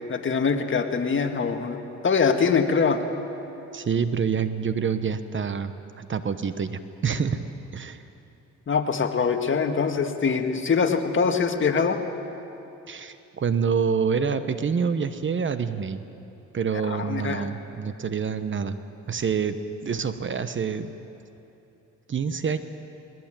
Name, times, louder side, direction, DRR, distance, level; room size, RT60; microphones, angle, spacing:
voice 1, 0.1-3.0 8.7-12.0 16.9-17.4, left 5 dB, 40° left, 5 dB, 1.8 m, -23 dB
voice 2, 3.7-7.4 7.7-8.0 12.9-16.0 16.5-18.8 19.1-19.6 19.8-20.9 22.1-22.6, right 6 dB, 40° right, 11 dB, 1.1 m, -27 dB
20.0 x 20.0 x 9.0 m, 2.9 s
cardioid pair, 90°, 30 cm